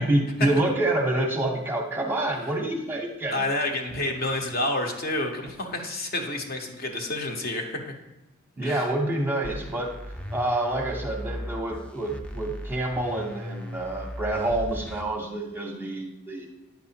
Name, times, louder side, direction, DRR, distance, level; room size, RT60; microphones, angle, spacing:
voice 1, 0.0-3.4 8.6-9.9 10.3-16.5, right 1 dB, 10° right, 0 dB, 0.8 m, -27 dB
voice 2, 3.3-7.9 8.6-8.9, left 2 dB, 45° left, 2 dB, 0.9 m, -29 dB
sound 1, 9.4-15.0, equal, 5° left, 0.4 m, -37 dB
9.2 x 6.1 x 2.8 m, 0.98 s
head